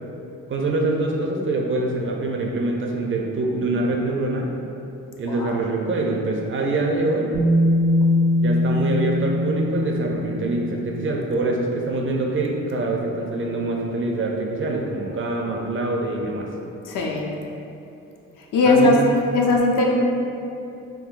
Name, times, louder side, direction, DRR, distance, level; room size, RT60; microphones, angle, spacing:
voice 1, 0.5-4.5 5.2-7.3 8.4-16.5 18.7-19.1, right 2 dB, 35° right, 0 dB, 0.4 m, -24 dB
Bass guitar, 7.3-11.3 12.4-12.5, left 1 dB, 85° right, 0.9 m, -21 dB
voice 2, 16.9-17.3 18.5-19.0 19.3-19.9, left 2 dB, 60° left, -1 dB, 0.6 m, -18 dB
3.6 x 2.2 x 2.4 m, 2.7 s
supercardioid pair, 55°, 37 cm